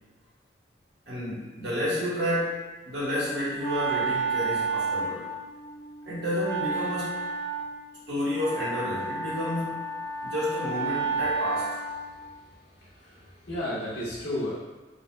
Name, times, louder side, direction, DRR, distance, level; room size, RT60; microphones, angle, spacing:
voice 1, 1.1-5.3 6.0-7.3 8.1-11.8, left 1 dB, 75° right, -9 dB, 1.2 m, -30 dB
Wind instrument woodwind instrument, 3.1-12.2, right 4 dB, 15° left, 0.4 m, -32 dB
voice 2, 12.1-14.5, left 1 dB, 65° left, -9 dB, 1.2 m, -34 dB
3.9 x 2.1 x 2.2 m, 1.2 s
head